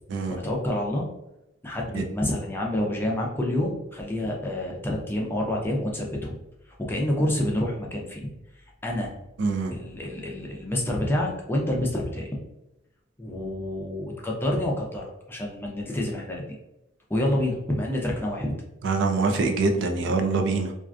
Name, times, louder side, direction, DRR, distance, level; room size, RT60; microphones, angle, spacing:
voice 1, 0.3-1.1 1.6-6.4 6.9-8.3 8.8-9.1 9.7-12.4 13.2-16.4 17.1-18.5, left 1 dB, 10° left, -2 dB, 0.4 m, -28 dB
voice 2, 9.4-9.7 18.8-20.7, right 3 dB, 60° right, 4 dB, 0.4 m, -24 dB
2.4 x 2.2 x 2.4 m, 0.91 s
head